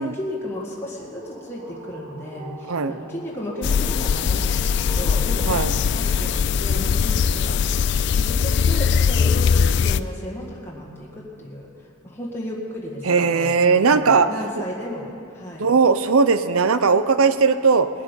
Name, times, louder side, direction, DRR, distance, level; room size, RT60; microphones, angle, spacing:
voice 1, 0.0-15.7, equal, 10° left, -5 dB, 1.8 m, -34 dB
sound 1, 0.9-6.8, right 2 dB, 30° right, 2.3 m, -43 dB
sound 2, 3.6-10.0, left 6 dB, 55° left, 0.3 m, -20 dB
voice 2, 13.1-14.3 15.6-17.9, right 5 dB, 75° right, 12 dB, 0.6 m, -18 dB
19.5 x 8.2 x 5.6 m, 2.7 s
head